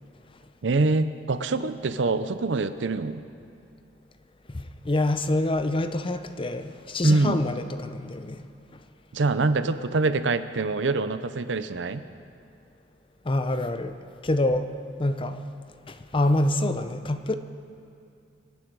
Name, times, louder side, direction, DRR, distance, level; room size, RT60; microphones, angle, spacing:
voice 1, 0.6-3.2 7.0-7.4 9.1-12.0, right 3 dB, 85° right, 12 dB, 0.6 m, -25 dB
voice 2, 4.5-8.5 13.2-13.9 14.2-14.7 15.0-15.4 15.9-17.4, left 1 dB, 30° left, 9 dB, 0.6 m, -26 dB
24.5 x 9.0 x 4.7 m, 2.6 s
head